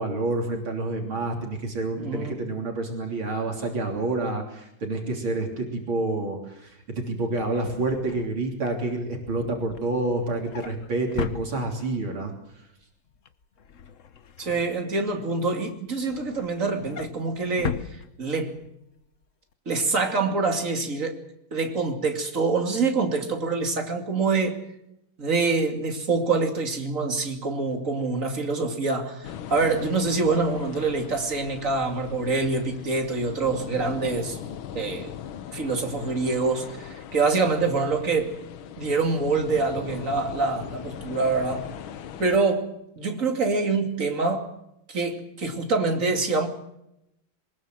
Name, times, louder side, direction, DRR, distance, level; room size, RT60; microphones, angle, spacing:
voice 1, 0.0-12.3, right 2 dB, 70° right, 4.0 m, -28 dB
voice 2, 2.0-2.4 14.4-18.6 19.7-21.2 21.5-24.6 25.2-34.4 34.7-35.1 35.5-38.4 38.8-41.7 42.2-42.7 43.0-44.5 44.9-46.5, right 3 dB, 35° right, 3.0 m, -25 dB
Drawer open or close, 7.1-12.1 12.5-12.8 13.1-15.3 15.7-18.7 19.1-19.3 19.5-19.6, left 7 dB, 50° left, 1.0 m, -38 dB
sound 1, 29.2-42.4, left 9 dB, 75° left, 1.9 m, -40 dB
24.0 x 20.5 x 7.7 m
omnidirectional pair, 2.3 m